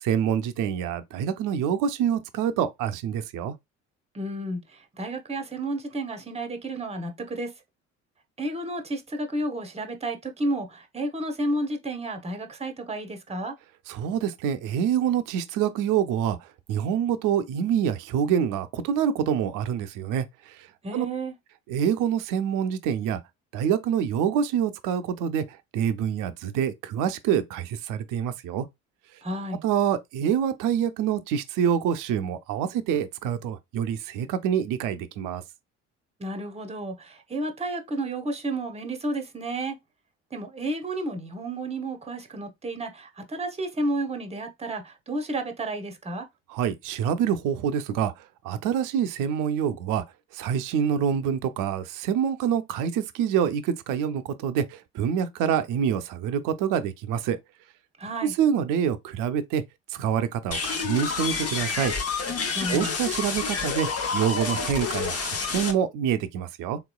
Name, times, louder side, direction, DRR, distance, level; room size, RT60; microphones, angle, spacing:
voice 1, 0.0-3.5 13.9-16.4 16.7-20.6 20.9-21.1 21.7-23.2 23.5-25.4 25.7-28.7 29.6-35.4 46.5-50.0 50.3-57.4 58.2-59.6 59.9-61.9 62.7-63.9 64.1-66.8, right 8 dB, 60° right, 0.6 m, -26 dB
voice 2, 4.1-7.5 8.4-13.5 20.8-21.3 29.2-29.6 36.2-39.8 40.3-46.3 58.0-58.3 62.5-62.9, right 1 dB, 15° right, 0.9 m, -31 dB
sound 1, 60.5-65.7, left 5 dB, 40° left, 0.9 m, -29 dB
3.5 x 3.0 x 2.2 m
hypercardioid pair, 55°, 36 cm